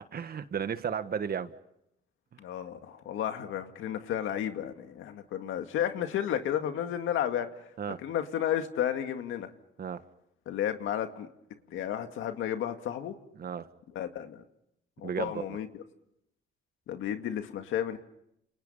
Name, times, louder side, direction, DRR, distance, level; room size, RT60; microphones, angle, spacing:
voice 1, 0.0-1.5 7.8-8.0 9.8-10.0 13.4-13.7 15.0-15.6, right 7 dB, 50° right, 11 dB, 1.6 m, -34 dB
voice 2, 2.4-7.7 8.0-9.5 10.5-11.3 11.7-13.1 14.0-14.4 15.0-15.7 16.9-18.0, left 10 dB, 85° left, 7 dB, 2.1 m, -32 dB
29.5 x 28.5 x 5.7 m, 0.80 s
cardioid pair, 90°, 20 cm